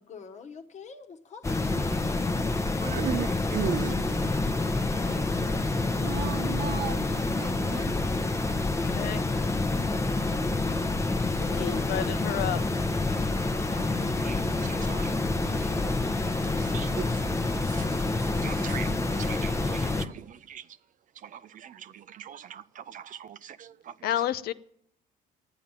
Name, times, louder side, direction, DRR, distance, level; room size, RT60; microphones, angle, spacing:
voice 1, 0.0-1.7 2.8-2.9 3.6-3.7 5.0-5.2 5.7-6.2 11.3-12.0 13.4-14.1 15.4-15.9, left 5 dB, 45° left, 1.2 m, -43 dB
sound 1, 1.4-20.1, left 2 dB, 15° left, 0.8 m, -28 dB
voice 2, 2.8-4.4 8.4-8.5 8.8-8.9 11.2-11.3 13.7-15.2 15.6-15.7 16.3-20.8 21.1-24.3, right 9 dB, 50° right, 0.6 m, -39 dB
voice 3, 6.0-7.9, right 8 dB, 70° right, 1.3 m, -37 dB
voice 4, 8.8-9.2 11.5-12.6 24.0-24.5, left 11 dB, 65° left, 0.6 m, -30 dB
sound 2, 11.2-19.0, right 1 dB, 10° right, 1.2 m, -46 dB
11.0 x 8.9 x 8.9 m
cardioid pair, 110°, 17 cm